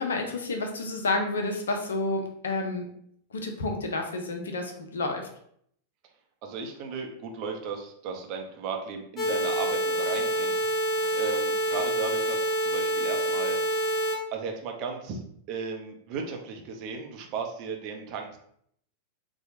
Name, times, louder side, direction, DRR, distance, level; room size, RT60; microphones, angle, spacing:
voice 1, 0.0-2.9 3.3-5.3, left 2 dB, 65° left, 4 dB, 0.6 m, -30 dB
voice 2, 6.4-13.6 14.3-15.2 15.5-18.4, right 5 dB, 40° right, 2 dB, 0.7 m, -35 dB
sound 1, 9.2-14.2, right 1 dB, 25° left, 0.9 m, -27 dB
4.3 x 2.3 x 2.7 m, 0.67 s
figure-of-eight pair, 90°, 0 cm